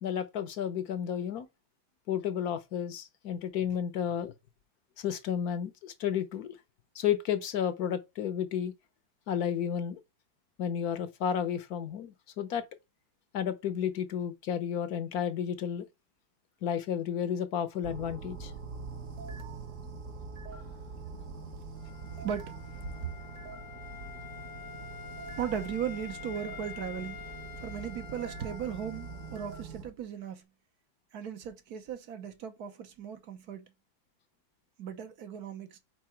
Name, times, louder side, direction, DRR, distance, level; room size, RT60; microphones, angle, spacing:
voice 1, 0.0-1.5 2.1-4.3 5.0-6.6 6.9-8.7 9.3-10.0 10.6-12.6 13.3-15.9 16.6-18.5, left 8 dB, 65° left, 1.2 m, -32 dB
sound 1, 17.8-29.9, right 4 dB, 50° right, 1.5 m, -44 dB
Wind instrument woodwind instrument, 21.8-29.6, left 8 dB, 85° left, 1.7 m, -47 dB
voice 2, 22.2-23.1 25.4-27.2 27.6-30.4 31.1-33.6 34.8-35.8, right 8 dB, 65° right, 1.4 m, -37 dB
4.7 x 4.6 x 4.4 m
omnidirectional pair, 1.8 m